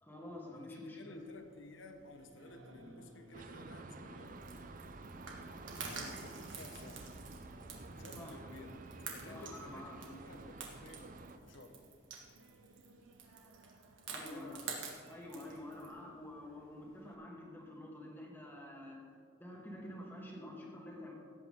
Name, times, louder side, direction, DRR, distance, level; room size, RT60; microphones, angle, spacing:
voice 1, 0.0-1.2 8.2-8.3 9.3-10.0 14.1-14.7 15.1-19.0 19.4-21.1, left 1 dB, 10° left, -2 dB, 1.7 m, -48 dB
voice 2, 0.5-4.5 5.7-7.1 8.0-11.2 11.5-11.8 14.1-15.0, left 2 dB, 70° left, 6 dB, 1.1 m, -54 dB
Singing, 1.1-17.1, right 2 dB, 90° right, 1.1 m, -62 dB
sound 1, 3.3-11.4, right 2 dB, 45° right, 0.6 m, -50 dB
sound 2, 4.2-15.9, right 5 dB, 70° right, 1.8 m, -48 dB
17.0 x 8.3 x 3.7 m, 2.1 s
head